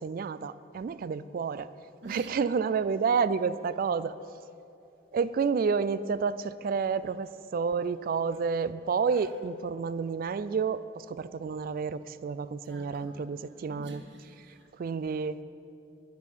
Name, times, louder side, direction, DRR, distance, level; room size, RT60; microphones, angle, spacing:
voice 1, 0.0-1.7 2.1-4.1 5.1-14.0 14.7-15.4, right 5 dB, 50° right, 15 dB, 0.3 m, -30 dB
voice 2, 2.0-2.3 9.1-9.3 12.6-13.2 13.7-15.0, right 2 dB, 80° right, 2 dB, 1.9 m, -49 dB
10.5 x 10.5 x 7.3 m, 2.8 s
head